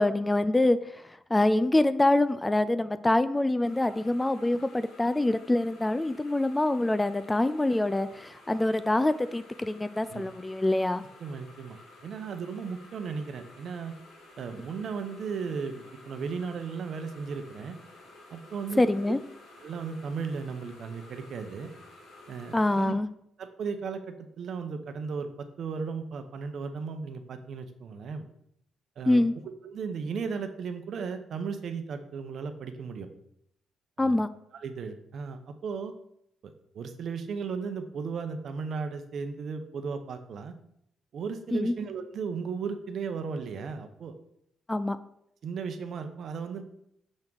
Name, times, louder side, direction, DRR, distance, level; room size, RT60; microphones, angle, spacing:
voice 1, 0.0-11.0 18.8-19.2 22.5-23.1 29.1-29.3 34.0-34.3 41.5-41.7 44.7-45.0, left 2 dB, 15° left, 13 dB, 0.3 m, -25 dB
sound 1, 3.6-22.9, left 2 dB, 70° left, 2.1 m, -53 dB
voice 2, 11.2-14.0 14.4-17.8 18.3-18.8 19.6-21.7 22.3-23.0 23.4-28.2 29.0-29.2 29.6-33.1 34.0-34.2 34.5-35.9 36.4-40.5 41.1-44.1 45.4-46.6, right 5 dB, 60° right, 8 dB, 0.8 m, -36 dB
6.5 x 3.6 x 6.2 m, 0.74 s
cardioid pair, 90°, 0 cm